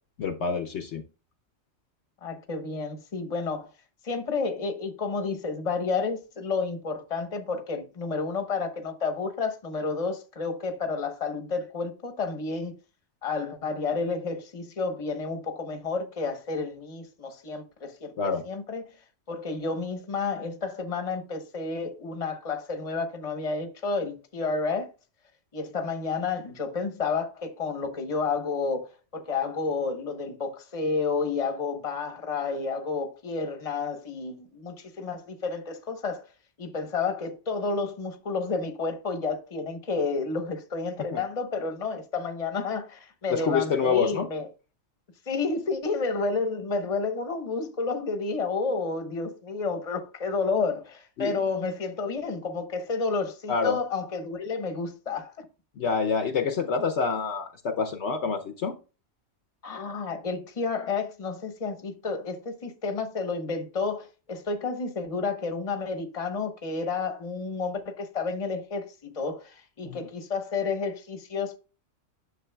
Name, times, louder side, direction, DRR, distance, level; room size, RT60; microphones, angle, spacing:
voice 1, 0.2-1.0 18.2-18.4 41.1-41.2 43.3-44.3 51.2-51.4 53.5-53.8 55.8-58.7 69.8-70.1, left 5 dB, 65° left, 0.9 m, -27 dB
voice 2, 2.2-3.7 4.0-12.7 13.2-18.8 19.3-24.9 25.5-36.3 36.6-44.5 45.3-55.4 59.6-71.6, left 4 dB, 30° left, 0.9 m, -30 dB
9.8 x 6.7 x 2.2 m
omnidirectional pair, 1.3 m